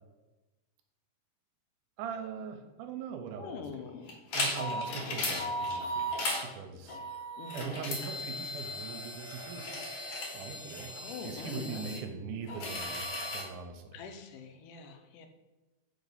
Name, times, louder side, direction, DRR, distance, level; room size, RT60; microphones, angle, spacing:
voice 1, 2.0-3.9 4.3-7.0 7.5-9.6 10.3-10.9 11.2-14.0, right 6 dB, 85° right, 6 dB, 2.1 m, -41 dB
voice 2, 3.4-4.2 5.2-5.4 7.4-7.7 11.0-11.9 13.9-15.3, left 5 dB, 90° left, 6 dB, 2.2 m, -44 dB
sound 1, 4.1-6.4 6.9-12.0 12.5-13.5, left 1 dB, 70° left, 2.3 m, -36 dB
5.1 x 4.0 x 5.5 m, 1.1 s
omnidirectional pair, 3.7 m